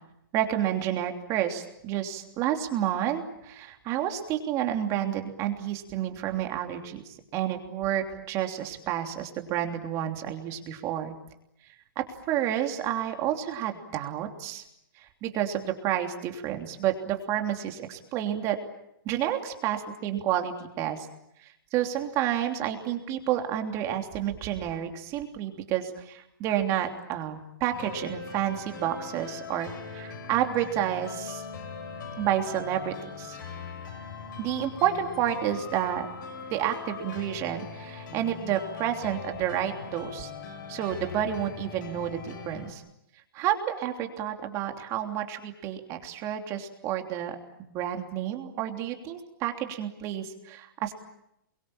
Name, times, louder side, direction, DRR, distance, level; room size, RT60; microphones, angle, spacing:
voice 1, 0.3-11.1 12.0-14.6 15.0-18.6 19.0-21.1 21.4-31.4 32.2-33.4 34.4-36.1 36.5-40.3 40.7-42.8 43.3-50.9, right 11 dB, 25° right, 5 dB, 3.1 m, -30 dB
sound 1, 27.7-42.7, left 5 dB, 60° left, 6.4 m, -40 dB
28.5 x 23.0 x 8.9 m, 0.82 s
hypercardioid pair, 160°, 12 cm